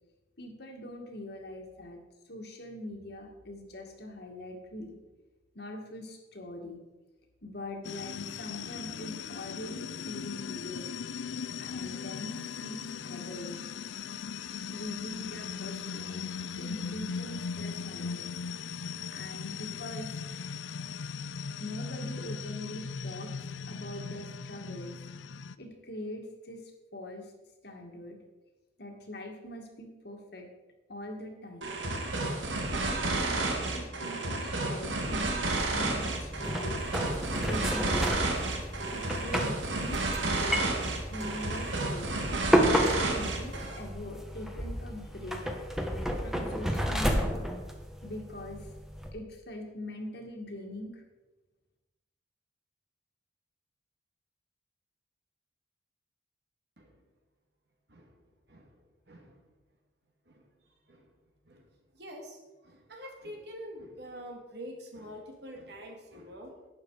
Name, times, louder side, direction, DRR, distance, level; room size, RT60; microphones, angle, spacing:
voice 1, 0.4-2.0 2.3-5.0 5.5-6.8 7.4-10.9 11.6-13.7 14.7-18.3 19.1-20.2 21.6-23.3 23.7-24.9 25.6-27.3 27.6-28.2 28.8-30.5 30.9-31.7 32.8-33.4 33.7-35.5 35.7-36.8 37.4-38.2 38.9-40.7 41.1-42.3 43.0-45.5 46.2-47.5 48.0-48.7 49.1-51.0, left 1 dB, 60° left, 2 dB, 2.1 m, -42 dB
sound 1, 7.8-25.6, left 6 dB, 80° left, 0.5 m, -39 dB
sound 2, 31.6-43.8, right 2 dB, 85° right, 1.9 m, -31 dB
sound 3, 35.5-49.1, equal, ahead, 1.2 m, -32 dB
voice 2, 59.1-59.4 60.3-60.4 60.9-61.1 61.4-61.6 61.9-66.6, equal, 60° right, 2 dB, 2.4 m, -45 dB
11.5 x 9.4 x 4.9 m, 1.1 s
head